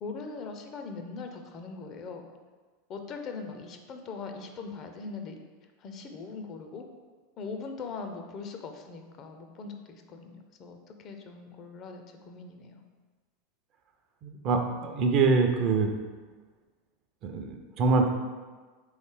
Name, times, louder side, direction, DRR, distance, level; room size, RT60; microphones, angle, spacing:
voice 1, 0.0-2.2 2.9-5.4 5.8-6.9 7.4-12.8, left 4 dB, 45° left, 5 dB, 0.5 m, -41 dB
voice 2, 14.2-15.9 17.2-18.1, right 4 dB, 45° right, 4 dB, 0.5 m, -25 dB
3.8 x 3.1 x 3.6 m, 1.4 s
hypercardioid pair, 90°, 0 cm